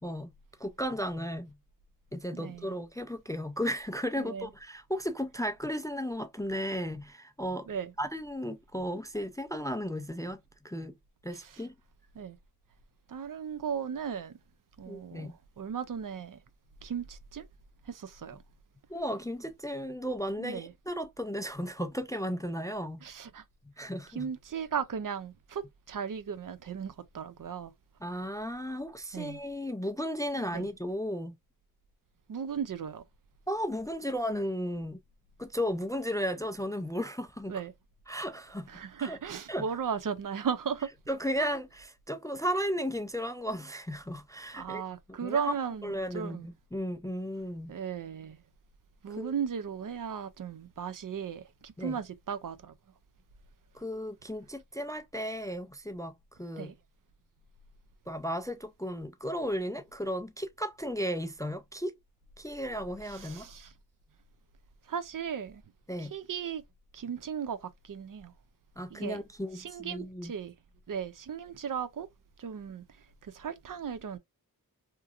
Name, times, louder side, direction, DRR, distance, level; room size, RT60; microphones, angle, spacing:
voice 1, 0.6-1.6 2.1-7.7 8.0-10.4 10.6-10.9 11.2-11.7 14.9-15.3 18.9-23.0 23.8-24.3 28.0-31.4 33.5-35.0 35.4-37.6 38.1-38.7 39.0-39.2 39.5-39.6 41.1-44.8 45.2-45.5 45.8-47.8 49.2-49.3 51.8-52.0 53.7-56.1 56.4-56.7 58.1-61.9 62.4-63.5 65.9-66.1 68.8-70.3, equal, 10° left, 0.3 m, -34 dB
voice 2, 2.3-2.7 4.2-4.5 7.7-7.9 11.3-11.6 12.1-12.4 13.1-14.3 14.8-16.4 16.8-17.5 17.8-18.4 20.4-20.7 23.0-23.4 24.1-27.7 29.1-29.4 30.5-30.7 32.3-33.0 37.5-37.7 38.7-40.9 41.4-41.5 44.5-46.5 47.7-48.4 49.0-52.8 56.6-56.8 63.0-63.7 64.8-65.6 66.0-66.6 66.9-68.3 68.9-69.2 69.5-70.5 70.9-72.1 72.4-74.2, right 7 dB, 60° right, 0.5 m, -36 dB
2.9 x 2.4 x 2.4 m
cardioid pair, 45°, 37 cm